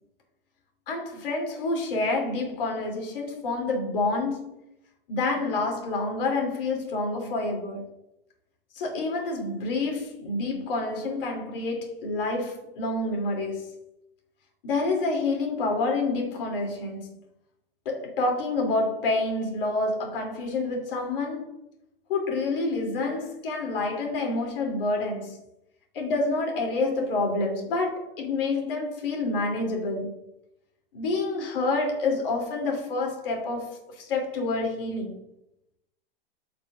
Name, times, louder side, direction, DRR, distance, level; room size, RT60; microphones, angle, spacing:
voice 1, 0.9-4.5 5.1-7.9 8.7-13.7 14.6-17.2 17.8-21.5 22.1-25.4 25.9-30.1 30.9-35.1, left 3 dB, 70° left, 2.8 m, -28 dB
9.7 x 5.5 x 2.5 m
supercardioid pair, 160°, 29 cm